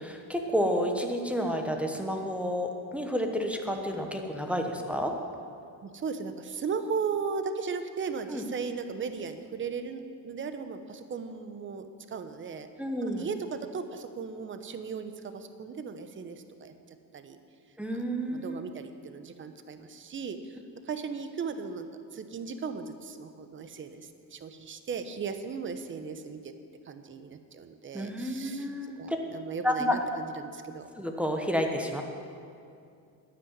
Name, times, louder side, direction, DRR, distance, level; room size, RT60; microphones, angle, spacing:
voice 1, 0.0-5.2 8.3-8.4 12.8-13.3 17.8-18.6 27.9-29.2 29.6-30.0 31.0-32.0, equal, 5° right, 2 dB, 1.1 m, -30 dB
voice 2, 5.8-12.7 13.0-16.7 17.1-17.4 17.9-18.0 18.3-20.6 20.9-21.9 22.1-26.5 26.8-28.7 29.0-30.9, right 5 dB, 30° right, 9 dB, 0.9 m, -37 dB
11.0 x 9.8 x 9.5 m, 2.5 s
cardioid pair, 145°, 39 cm